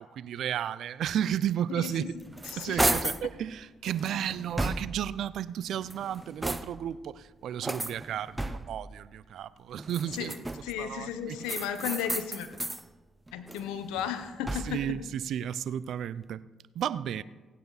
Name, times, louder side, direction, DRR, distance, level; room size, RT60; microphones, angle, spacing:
voice 1, 0.0-2.2 2.6-10.4 10.8-11.5 14.5-16.4 16.7-17.2, right 10 dB, 70° right, 0.5 m, -33 dB
voice 2, 1.7-2.1 2.4-2.9 10.2-10.4 10.6-12.5 13.3-14.8, left 9 dB, 85° left, 1.0 m, -35 dB
sound 1, 2.0-3.3 3.9-5.1 5.7-7.0 7.6-8.9 9.8-10.8 11.4-12.8 13.3-14.9, right 2 dB, 15° right, 0.9 m, -33 dB
18.5 x 9.3 x 4.1 m
supercardioid pair, 55°, 0 cm